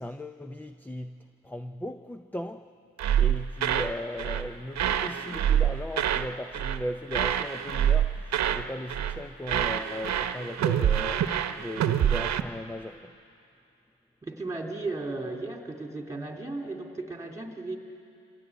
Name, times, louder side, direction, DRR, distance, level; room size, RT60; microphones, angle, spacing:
voice 1, 0.0-2.7 3.2-13.2, left 1 dB, 5° left, 9 dB, 0.6 m, -37 dB
sound 1, 3.0-3.9 4.2-4.5 4.8-6.3 6.5-6.8 7.1-8.6 8.9-9.2 9.5-12.4, right 10 dB, 60° right, 1.0 m, -26 dB
voice 2, 14.2-17.8, right 2 dB, 10° right, 2 dB, 3.0 m, -35 dB
25.5 x 16.0 x 9.2 m, 2.6 s
cardioid pair, 90°, 30 cm